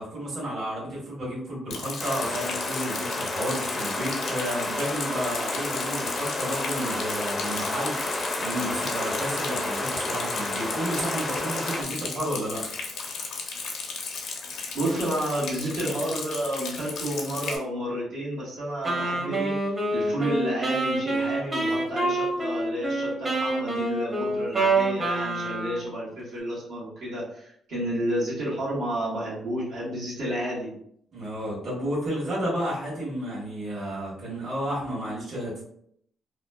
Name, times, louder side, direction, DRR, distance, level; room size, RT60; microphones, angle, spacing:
voice 1, 0.0-8.1 8.4-12.6 31.1-35.6, equal, 55° right, -6 dB, 1.2 m, -32 dB
Rain, 1.7-17.6, left 4 dB, 75° left, 0.5 m, -35 dB
sound 1, 2.0-11.8, left 2 dB, 25° left, 0.4 m, -31 dB
voice 2, 14.7-19.6 19.9-30.7, right 1 dB, 90° right, -9 dB, 1.3 m, -30 dB
Wind instrument woodwind instrument, 18.9-26.0, right 2 dB, 30° right, 0.7 m, -27 dB
2.9 x 2.1 x 2.2 m, 0.68 s
cardioid pair, 90°, 0 cm